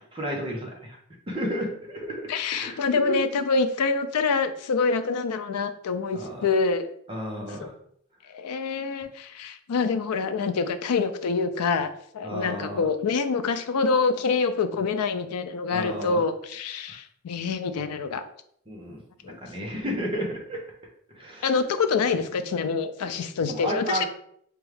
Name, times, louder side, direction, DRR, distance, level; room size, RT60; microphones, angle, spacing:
voice 1, 0.1-1.0 1.3-3.2 6.1-6.5 7.1-7.7 12.2-12.9 15.7-16.2 16.9-17.0 18.7-20.6 21.1-21.6 23.5-24.1, equal, 25° right, -1 dB, 0.8 m, -32 dB
voice 2, 2.3-6.9 7.6-7.7 8.3-11.9 12.1-18.2 19.2-19.4 21.4-24.0, left 4 dB, 90° left, 10 dB, 0.4 m, -26 dB
5.1 x 2.3 x 3.2 m, 0.67 s
head